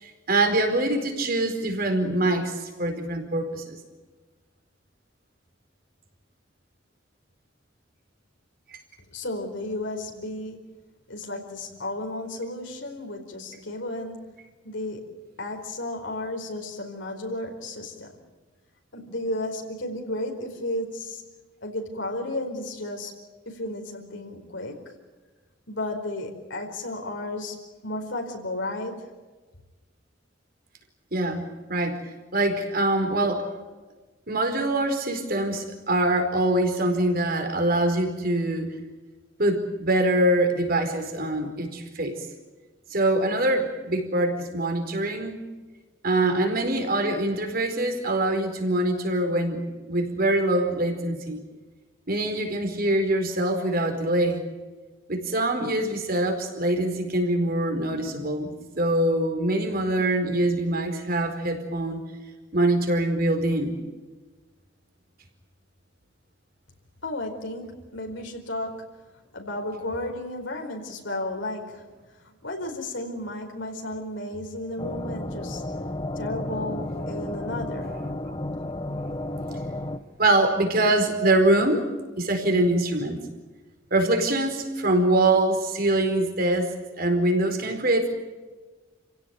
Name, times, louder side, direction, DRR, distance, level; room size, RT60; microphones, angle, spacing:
voice 1, 0.0-3.8 8.7-8.8 31.1-32.0 32.3-33.5 34.3-38.7 39.4-42.2 42.9-45.4 46.0-49.6 49.9-51.4 52.1-54.4 55.1-62.0 62.5-63.8 78.3-78.4 78.9-79.1 79.5-79.6 80.2-81.8 82.2-83.2 83.9-88.1, right 1 dB, 50° right, 5 dB, 4.6 m, -24 dB
voice 2, 9.1-10.7 11.1-14.3 14.6-15.1 15.4-18.2 18.9-21.2 21.6-23.2 23.4-24.8 25.7-27.6 27.8-29.1 67.0-68.8 69.3-71.9 72.4-75.6 76.2-78.0, left 1 dB, 70° left, 2 dB, 4.8 m, -33 dB
sound 1, 74.8-80.0, left 1 dB, 25° left, 1.0 m, -32 dB
29.0 x 17.0 x 9.4 m, 1.3 s
head